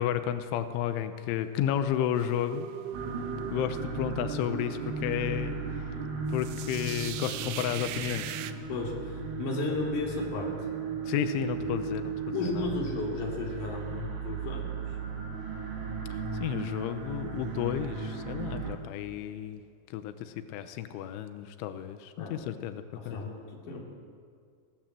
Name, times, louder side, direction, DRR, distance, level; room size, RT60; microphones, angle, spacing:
voice 1, 0.0-2.7 3.5-5.6 6.3-8.4 11.1-12.7 16.1-19.6 19.9-23.2, left 10 dB, 90° left, 9 dB, 3.2 m, -32 dB
sound 1, 2.1-8.5, right 11 dB, 80° right, 2.3 m, -40 dB
sound 2, 2.9-18.8, right 4 dB, 50° right, 3.0 m, -36 dB
voice 2, 8.7-10.5 11.6-11.7 12.3-14.7 22.2-22.5 23.0-23.8, left 3 dB, 45° left, -1 dB, 4.1 m, -34 dB
21.5 x 17.0 x 7.5 m, 2.2 s
omnidirectional pair, 5.3 m